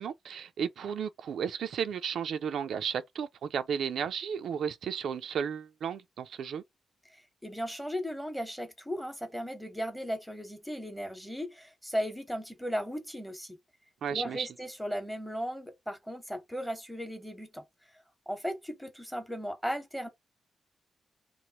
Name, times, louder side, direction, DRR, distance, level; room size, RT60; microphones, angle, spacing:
voice 1, 0.0-6.6 14.0-14.5, right 7 dB, 90° right, 0.3 m, -33 dB
voice 2, 7.4-13.6 14.1-17.6 18.3-20.1, equal, 5° left, 0.8 m, -36 dB
3.0 x 2.0 x 2.8 m
cardioid pair, 110°, 0 cm